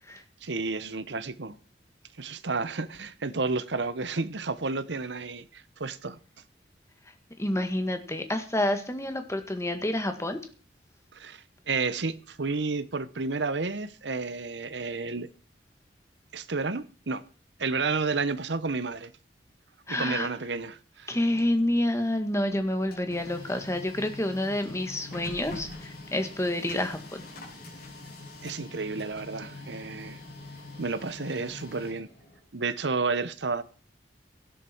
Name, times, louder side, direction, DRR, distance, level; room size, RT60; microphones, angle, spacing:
voice 1, 0.4-1.6 2.2-6.2 11.1-15.3 16.3-17.2 17.6-19.1 19.9-21.2 28.4-30.2 30.8-32.1 32.5-33.6, right 4 dB, 85° right, 1.0 m, -31 dB
voice 2, 7.4-10.4 19.9-20.3 21.1-27.2, left 1 dB, 15° left, 1.8 m, -28 dB
Printer, 22.6-32.4, left 2 dB, 60° left, 7.2 m, -44 dB
17.0 x 12.5 x 4.5 m
head